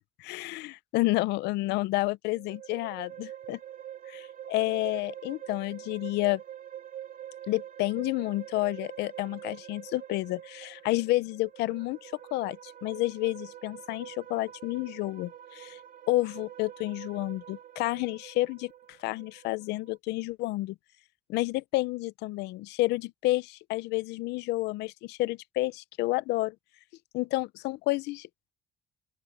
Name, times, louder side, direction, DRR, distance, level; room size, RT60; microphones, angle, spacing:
voice 1, 0.2-3.6 4.1-6.4 7.5-15.8 16.1-18.7 19.0-20.7 21.3-26.5 27.1-28.3, left 19 dB, 85° left, 0.7 m, -30 dB
sound 1, 2.3-20.0, right 11 dB, 55° right, 2.5 m, -45 dB
open air
cardioid pair, 110°, 17 cm